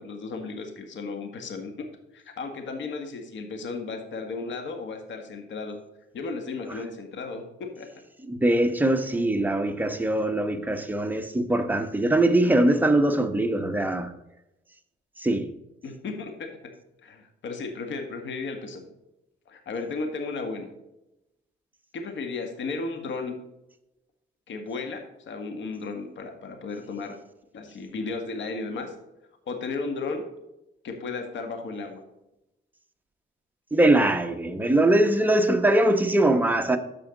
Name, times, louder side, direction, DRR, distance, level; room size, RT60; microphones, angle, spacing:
voice 1, 0.0-1.7 2.1-5.8 6.1-7.9 15.8-16.5 17.0-18.9 19.5-20.7 21.9-23.4 24.5-27.2 27.5-28.9 29.5-30.3 30.8-32.0, left 4 dB, 70° left, 2.0 m, -34 dB
voice 2, 8.3-14.1 15.2-15.5 33.7-36.8, right 1 dB, 10° right, 1.1 m, -22 dB
13.5 x 5.0 x 3.9 m
cardioid pair, 90°, 20 cm